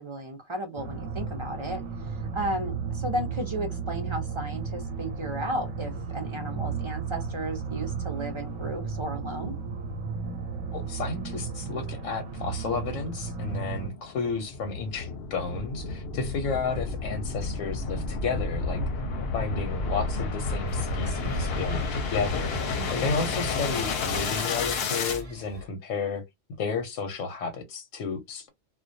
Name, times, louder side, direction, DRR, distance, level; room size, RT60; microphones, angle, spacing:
voice 1, 0.0-9.5 22.8-23.3, right 1 dB, 50° right, 0.3 m, -34 dB
sound 1, 0.8-13.9, right 5 dB, 85° right, 1.0 m, -34 dB
voice 2, 10.7-19.1 19.3-26.2 26.6-28.5, left 5 dB, 90° left, 1.0 m, -32 dB
sound 2, 13.7-25.2, left 3 dB, 60° left, 0.7 m, -31 dB
sound 3, 20.7-25.7, left 1 dB, 35° right, 0.7 m, -44 dB
2.2 x 2.2 x 2.6 m
omnidirectional pair, 1.3 m